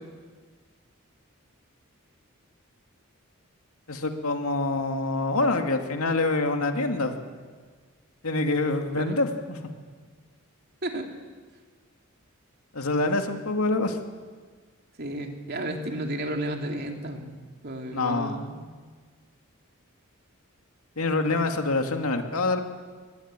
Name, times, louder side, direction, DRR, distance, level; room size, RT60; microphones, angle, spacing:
voice 1, 3.9-7.2 8.2-9.6 12.7-14.0 17.9-18.4 21.0-22.6, left 2 dB, 90° left, 5 dB, 2.3 m, -26 dB
voice 2, 15.0-17.4 17.6-18.6, right 1 dB, 50° right, 3 dB, 2.9 m, -32 dB
23.5 x 19.5 x 9.0 m, 1.5 s
head